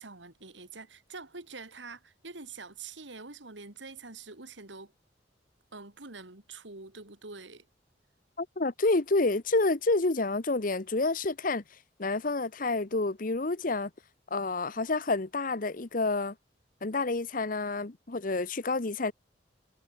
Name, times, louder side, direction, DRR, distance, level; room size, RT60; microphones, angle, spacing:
voice 1, 0.0-4.9 5.7-7.7, right 4 dB, 90° right, 3.3 m, -45 dB
voice 2, 8.4-11.6 12.0-13.9 14.3-16.3 16.8-19.1, left 3 dB, 50° left, 1.0 m, -29 dB
head